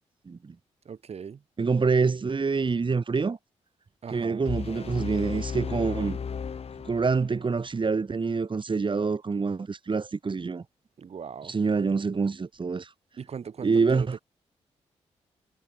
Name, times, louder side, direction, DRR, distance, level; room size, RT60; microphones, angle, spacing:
voice 1, 0.9-1.4 4.0-4.5 11.0-11.5 13.2-14.1, right 6 dB, 55° right, 2.1 m, -39 dB
voice 2, 1.6-3.4 4.1-6.2 6.8-10.6 11.4-12.9 13.6-14.2, right 4 dB, 40° right, 2.7 m, -26 dB
sound 1, 4.5-7.5, left 6 dB, 55° left, 2.4 m, -34 dB
supercardioid pair, 55°, 12 cm